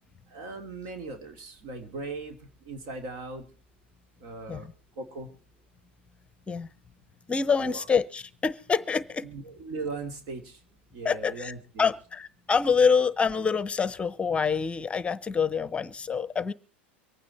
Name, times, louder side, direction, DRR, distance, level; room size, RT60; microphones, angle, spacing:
voice 1, 0.3-2.3 2.7-3.5 4.2-4.7 5.0-5.3 7.6-7.9 9.2-10.6 10.9-11.9, right 3 dB, 60° right, 6 dB, 3.1 m, -38 dB
voice 2, 7.3-9.3 11.0-11.5 11.8-16.5, left 5 dB, 20° left, 18 dB, 0.9 m, -26 dB
24.5 x 9.2 x 4.4 m, 0.36 s
hypercardioid pair, 95°, 6 cm